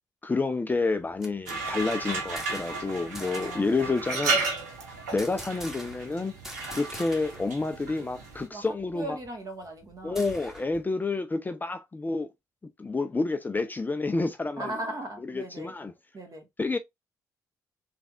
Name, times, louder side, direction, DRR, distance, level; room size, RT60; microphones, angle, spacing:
voice 1, 0.2-4.4 5.1-6.3 6.7-9.2 10.0-12.3 12.8-14.7 15.2-15.9 16.6-16.8, left 3 dB, 20° left, 0.5 m, -29 dB
sound 1, 0.9-2.9 3.1-3.6 5.2-6.1 6.4-7.5 7.8-7.9 8.2-10.8, equal, 5° right, 1.2 m, -45 dB
sound 2, 1.5-8.5, right 3 dB, 90° right, 0.8 m, -33 dB
voice 2, 3.2-4.0 8.5-8.7 8.9-10.2 14.6-15.7 16.1-16.5, right 2 dB, 40° right, 1.6 m, -38 dB
3.4 x 3.2 x 2.4 m
hypercardioid pair, 45°, 9 cm